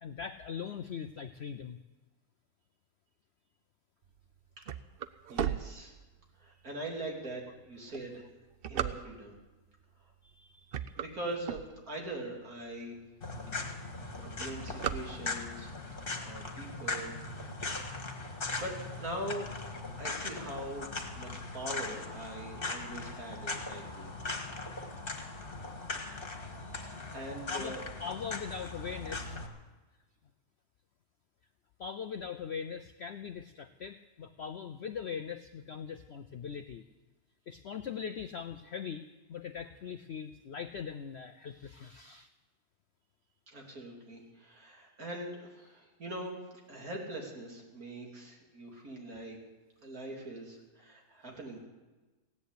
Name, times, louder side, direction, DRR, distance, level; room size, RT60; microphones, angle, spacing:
voice 1, 0.0-1.8 10.2-10.9 27.5-29.4 31.8-36.8 37.5-39.0 39.3-42.3, left 7 dB, 65° left, 10 dB, 0.6 m, -41 dB
sound 1, 4.2-6.4 7.0-7.1 7.8-9.5 10.1-10.3 10.6-12.2 12.7-12.8 13.0-13.1 13.4-13.7 14.0-15.6, right 9 dB, 75° right, 0.5 m, -36 dB
voice 2, 5.3-5.9 6.4-8.3 8.7-9.3 11.0-13.0 14.2-15.7 16.2-17.1 18.6-19.5 20.0-24.1 26.9-27.8 43.5-46.4 46.7-49.4 49.8-51.6, right 1 dB, 60° right, 0 dB, 3.4 m, -42 dB
sound 2, 13.2-29.5, left 3 dB, 35° left, 1.8 m, -39 dB
16.5 x 10.5 x 8.3 m, 1.2 s
omnidirectional pair, 1.7 m